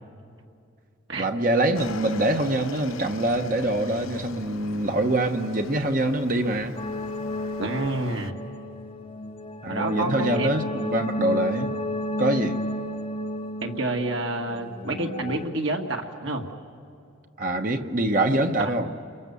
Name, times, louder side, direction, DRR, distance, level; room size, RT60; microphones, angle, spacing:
voice 1, 1.2-6.7 9.6-11.7 12.2-12.6 17.4-18.9, right 1 dB, 40° right, 5 dB, 1.1 m, -24 dB
Motorcycle / Engine, 1.7-8.3, left 4 dB, 75° left, 0.9 m, -40 dB
sound 1, 6.8-15.5, left 1 dB, 25° left, 0.7 m, -32 dB
voice 2, 7.6-8.3 9.7-10.5 13.6-16.5, right 2 dB, 60° right, 2 dB, 2.0 m, -28 dB
30.0 x 23.0 x 7.0 m, 2.5 s
head